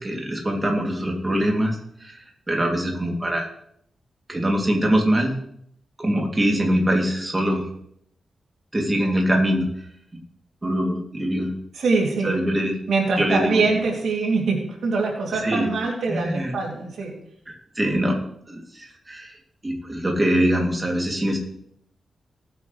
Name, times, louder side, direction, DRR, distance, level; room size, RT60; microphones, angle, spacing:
voice 1, 0.0-3.5 4.3-5.3 6.0-7.6 8.7-9.7 10.6-11.5 12.2-12.8 13.2-13.7 15.3-15.7 16.1-16.5 17.5-18.2 18.5-19.3 19.6-21.4, equal, 20° right, 0 dB, 2.8 m, -23 dB
voice 2, 11.7-12.4 12.9-17.1, right 4 dB, 85° right, 0 dB, 2.8 m, -23 dB
19.5 x 8.3 x 3.3 m, 0.70 s
wide cardioid pair, 115°, 0 cm